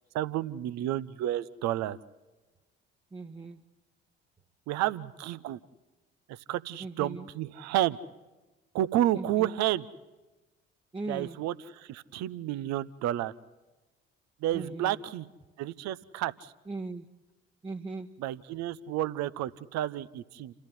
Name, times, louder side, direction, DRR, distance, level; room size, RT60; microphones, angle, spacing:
voice 1, 0.1-2.0 4.7-5.6 6.3-8.0 8.7-9.8 11.1-13.3 14.4-15.3 15.6-16.5 18.2-20.5, right 13 dB, 55° right, 17 dB, 0.9 m, -31 dB
voice 2, 3.1-3.6 6.8-7.2 9.1-9.5 10.9-11.4 14.5-15.0 16.7-17.0 17.6-18.1, right 3 dB, 15° right, 4 dB, 1.2 m, -38 dB
28.5 x 14.5 x 9.5 m, 1.1 s
figure-of-eight pair, 50°, 32 cm